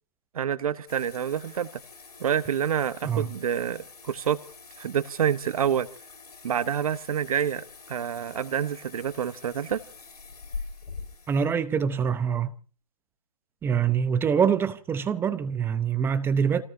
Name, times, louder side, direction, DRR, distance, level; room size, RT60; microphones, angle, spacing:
voice 1, 0.3-1.7 2.2-4.4 4.8-5.9 6.4-9.8, right 8 dB, 70° right, 1.2 m, -27 dB
sound 1, 0.9-11.5, left 4 dB, 85° left, 5.8 m, -45 dB
voice 2, 11.3-12.5 13.6-16.6, right 7 dB, 10° right, 0.8 m, -25 dB
29.0 x 18.5 x 2.7 m
hypercardioid pair, 140°, 19 cm